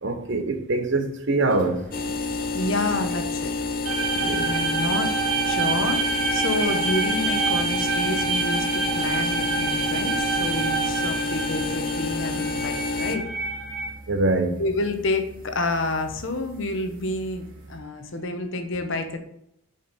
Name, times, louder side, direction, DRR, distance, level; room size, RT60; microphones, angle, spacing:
voice 1, 0.0-1.8 3.9-4.5 14.1-14.6, right 2 dB, 55° right, 0.8 m, -24 dB
sound 1, 1.4-17.8, equal, 40° right, 2.4 m, -45 dB
sound 2, 1.9-13.2, left 3 dB, 40° left, 0.6 m, -29 dB
voice 2, 2.5-3.5 4.1-5.2 5.4-13.2 14.6-19.2, left 2 dB, 55° left, 0.9 m, -29 dB
sound 3, 3.8-13.9, right 5 dB, 75° right, 1.1 m, -27 dB
7.5 x 5.2 x 4.1 m
head